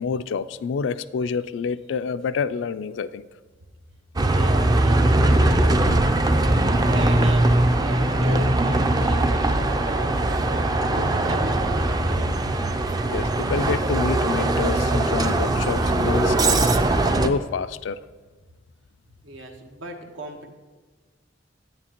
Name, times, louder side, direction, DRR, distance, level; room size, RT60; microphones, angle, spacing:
voice 1, 0.0-3.3 13.1-16.7 17.2-18.0, left 5 dB, 70° left, 16 dB, 0.3 m, -28 dB
Bus, 4.2-17.3, right 2 dB, 20° right, 0.4 m, -20 dB
voice 2, 4.2-5.0 6.8-12.3 19.2-20.5, right 1 dB, 80° right, 3 dB, 1.1 m, -36 dB
9.6 x 9.0 x 2.9 m, 1.3 s
head